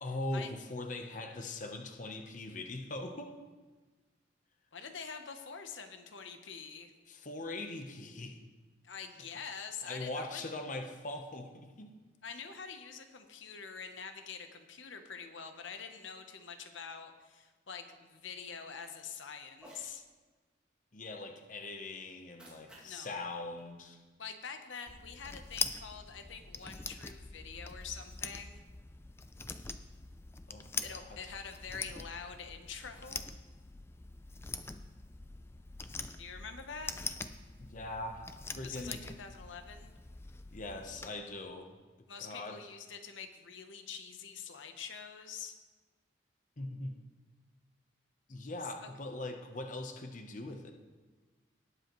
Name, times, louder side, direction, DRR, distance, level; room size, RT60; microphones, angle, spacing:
voice 1, 0.0-3.3 7.1-8.4 9.8-11.9 20.9-24.0 30.5-31.2 37.6-38.3 38.6-39.0 40.5-41.7 42.2-42.6 46.6-47.0 48.3-50.7, left 2 dB, 40° left, 4 dB, 0.8 m, -41 dB
voice 2, 4.7-6.9 8.8-10.4 12.2-20.0 22.8-23.1 24.2-28.6 30.8-33.2 36.2-36.9 38.6-39.9 42.1-45.6 48.8-48.9, left 6 dB, 80° left, 7 dB, 0.9 m, -45 dB
Cat, 19.5-19.9 22.1-24.5, right 1 dB, 5° right, 2.2 m, -58 dB
sound 1, 24.9-41.1, left 4 dB, 15° left, 0.3 m, -43 dB
19.0 x 7.7 x 3.1 m, 1.3 s
head